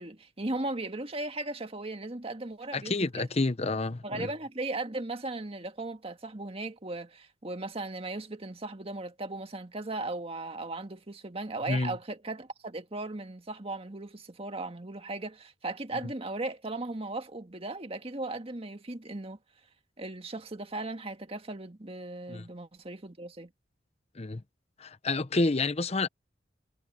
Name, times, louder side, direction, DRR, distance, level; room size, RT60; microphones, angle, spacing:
voice 1, 0.0-3.3 4.0-19.4 20.0-23.5, right 2 dB, 35° right, 1.8 m, -37 dB
voice 2, 2.7-4.3 11.7-12.0 22.3-22.5 24.1-24.4 24.8-26.1, left 3 dB, 35° left, 0.8 m, -29 dB
head